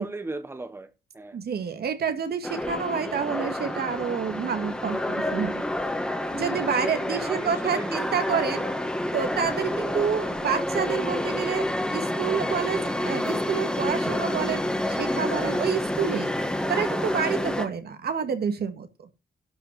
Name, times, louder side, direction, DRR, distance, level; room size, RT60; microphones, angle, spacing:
voice 1, 0.0-1.4 7.1-8.1, right 2 dB, 15° right, 1.1 m, -36 dB
voice 2, 1.3-5.6 6.3-8.7 9.1-11.7 11.9-16.3 16.7-18.9, right 7 dB, 75° right, 2.1 m, -28 dB
sound 1, 2.4-17.7, left 1 dB, 5° left, 1.8 m, -28 dB
12.0 x 5.5 x 7.2 m
wide cardioid pair, 150°, 16 cm